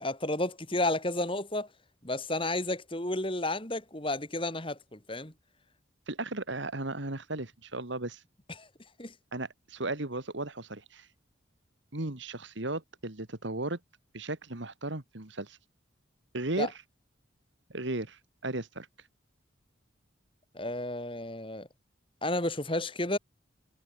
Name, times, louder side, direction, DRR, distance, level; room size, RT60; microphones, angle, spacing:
voice 1, 0.0-1.7 2.0-5.3 8.6-8.7 9.0-9.1 16.6-16.7 20.5-21.7 22.2-23.2, left 2 dB, 25° left, 3.6 m, -32 dB
voice 2, 6.1-8.2 9.3-11.1 11.9-13.8 14.1-15.6 16.3-16.7 17.7-18.9, right 2 dB, 65° right, 2.2 m, -35 dB
head